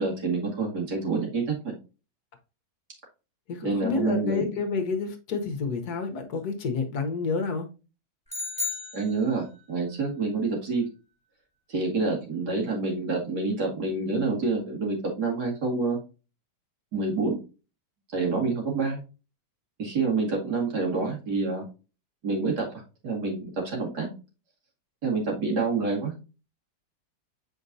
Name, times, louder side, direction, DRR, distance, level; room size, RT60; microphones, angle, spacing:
voice 1, 0.0-1.5 3.6-4.4 8.9-10.8 11.7-16.0 16.9-17.4 18.1-19.0 19.8-21.6 22.2-22.7 23.0-24.1 25.0-26.2, right 3 dB, 65° right, 2.6 m, -27 dB
voice 2, 3.5-7.7, left 4 dB, 65° left, 1.5 m, -29 dB
sound 1, 8.3-9.7, left 4 dB, 5° right, 1.8 m, -34 dB
7.8 x 4.6 x 2.6 m
omnidirectional pair, 1.9 m